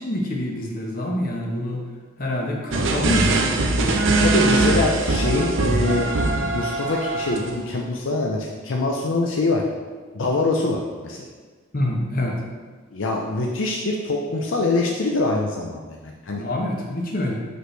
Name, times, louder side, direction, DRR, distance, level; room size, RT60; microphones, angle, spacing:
voice 1, 0.0-1.8 2.2-4.2 11.7-12.4 16.3-17.4, left 1 dB, 45° left, -1 dB, 1.0 m, -26 dB
sound 1, 2.7-7.6, right 3 dB, 70° right, 0.6 m, -21 dB
voice 2, 4.2-6.1 6.5-9.6 10.1-11.2 12.9-16.4, left 2 dB, 70° left, 0 dB, 0.6 m, -24 dB
6.1 x 5.2 x 3.3 m, 1.4 s
head